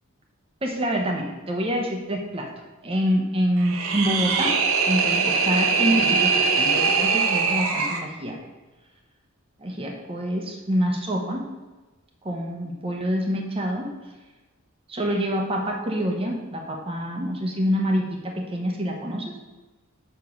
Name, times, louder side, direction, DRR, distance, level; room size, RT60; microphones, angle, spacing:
voice 1, 0.6-2.5 2.8-8.4 9.6-11.5 12.2-13.9 14.9-19.3, equal, 25° right, 1 dB, 0.8 m, -26 dB
sound 1, 3.6-8.0, right 5 dB, 90° right, 0.9 m, -22 dB
6.3 x 4.8 x 5.3 m, 1.2 s
head